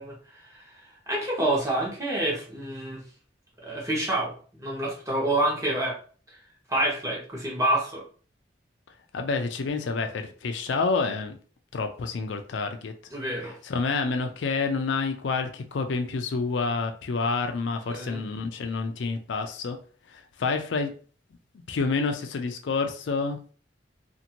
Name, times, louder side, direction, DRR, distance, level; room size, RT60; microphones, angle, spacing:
voice 1, 0.0-3.0 3.6-6.0 6.3-6.4 6.7-8.0 13.1-13.6 17.9-18.2, right 1 dB, 20° right, -4 dB, 1.0 m, -28 dB
voice 2, 9.1-11.4 11.7-12.9 13.6-19.8 20.1-20.9 21.7-23.4, left 4 dB, 80° left, 6 dB, 0.4 m, -28 dB
2.6 x 2.5 x 2.8 m, 0.42 s
head